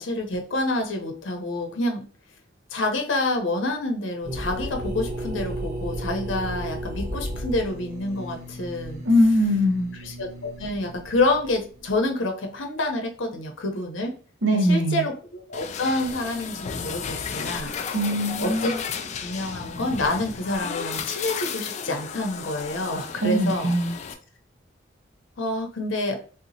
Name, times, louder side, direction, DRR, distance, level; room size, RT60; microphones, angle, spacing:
voice 1, 0.0-2.0 2.7-9.0 10.0-14.2 14.5-17.7 18.4-18.7 19.2-23.7 25.4-26.2, left 2 dB, 80° left, 3 dB, 0.8 m, -28 dB
sound 1, 4.2-12.0, right 1 dB, 40° right, 1.2 m, -34 dB
voice 2, 9.0-9.9 14.4-15.0 17.9-18.8 23.2-24.0, equal, 70° right, 3 dB, 0.8 m, -21 dB
sound 2, 15.5-24.1, left 6 dB, 35° left, 0.3 m, -33 dB
3.5 x 2.8 x 2.7 m, 0.39 s
head